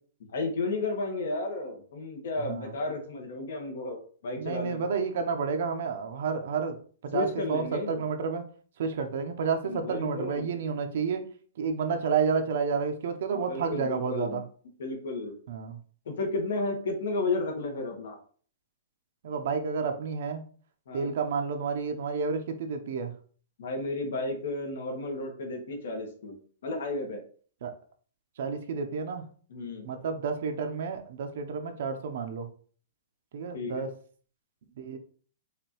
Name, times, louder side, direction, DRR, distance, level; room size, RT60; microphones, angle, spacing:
voice 1, 0.3-4.9 7.1-8.0 9.7-10.5 13.3-14.4 14.8-15.3 16.1-18.2 20.9-21.1 23.6-27.2 29.5-29.9 33.5-33.9, left 2 dB, 75° left, 2 dB, 1.3 m, -33 dB
voice 2, 4.4-6.8 7.0-8.4 8.8-11.2 11.6-14.4 15.5-15.8 19.2-20.4 20.9-23.1 27.6-27.7 28.4-29.3 29.8-32.5 33.3-33.9 34.8-35.0, right 5 dB, 65° right, 6 dB, 0.7 m, -30 dB
4.9 x 2.6 x 3.0 m, 0.44 s
hypercardioid pair, 155°, 0 cm